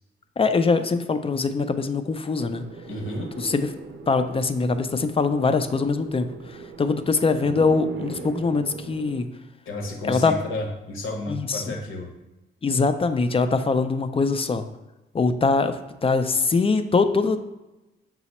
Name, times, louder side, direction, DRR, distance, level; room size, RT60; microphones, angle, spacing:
voice 1, 0.4-2.6 3.4-3.7 4.1-9.3 10.0-10.3 11.3-11.7 12.6-14.7 15.1-15.8 16.0-17.4, left 4 dB, 30° left, 9 dB, 0.4 m, -23 dB
sound 1, 2.4-9.2, right 4 dB, 60° right, 0.6 m, -39 dB
voice 2, 2.9-3.3 9.7-12.1, left 1 dB, 80° left, 1 dB, 0.9 m, -32 dB
5.8 x 2.0 x 4.1 m, 0.99 s
cardioid pair, 70°, 21 cm